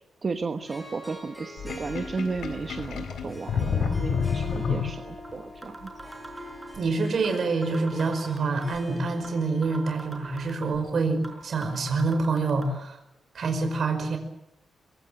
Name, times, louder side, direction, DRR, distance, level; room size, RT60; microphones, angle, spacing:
voice 1, 0.2-5.9, right 4 dB, 30° right, 8 dB, 1.1 m, -34 dB
Harp, 0.6-10.9, equal, 5° left, 5.7 m, -43 dB
Sink (filling or washing), 1.6-5.3, left 6 dB, 70° left, 3.9 m, -29 dB
sound 1, 5.2-5.3 5.6-6.8 7.2-7.4 7.6-8.8 9.2-9.3 9.6-10.8 11.2-11.4 11.6-12.7, right 2 dB, 10° right, 5.2 m, -42 dB
voice 2, 6.8-13.0 13.3-14.2, right 3 dB, 50° right, 6 dB, 5.5 m, -26 dB
24.5 x 22.5 x 7.8 m, 0.87 s
wide cardioid pair, 170°, 0 cm